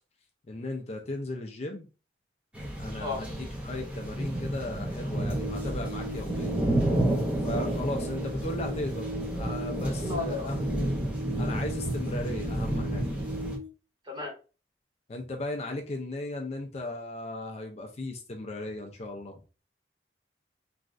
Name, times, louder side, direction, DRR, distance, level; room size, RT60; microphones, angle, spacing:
voice 1, 0.5-1.9 2.8-6.5 7.4-10.6 11.4-13.0 15.1-19.4, left 2 dB, 35° left, 0.4 m, -36 dB
sound 1, 2.5-13.6, right 1 dB, 5° right, 0.7 m, -31 dB
sound 2, 5.1-13.7, right 1 dB, 50° right, 0.9 m, -40 dB
voice 2, 9.8-10.5 14.0-14.3, left 3 dB, 30° right, 1.3 m, -34 dB
3.1 x 2.4 x 2.4 m
head